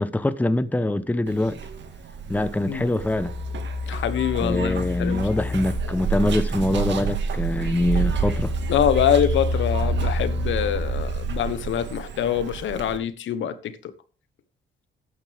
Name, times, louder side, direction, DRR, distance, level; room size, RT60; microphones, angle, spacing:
voice 1, 0.0-1.6 2.3-3.3 4.4-8.5, left 1 dB, 10° left, 0.9 m, -24 dB
Zipper (clothing), 1.3-13.0, right 6 dB, 65° right, 2.0 m, -30 dB
sound 1, 3.0-6.9 7.3-11.8, left 3 dB, 40° left, 2.1 m, -30 dB
voice 2, 3.9-5.3 8.7-13.7, left 9 dB, 75° left, 1.3 m, -24 dB
13.5 x 9.4 x 3.6 m
cardioid pair, 90°, 20 cm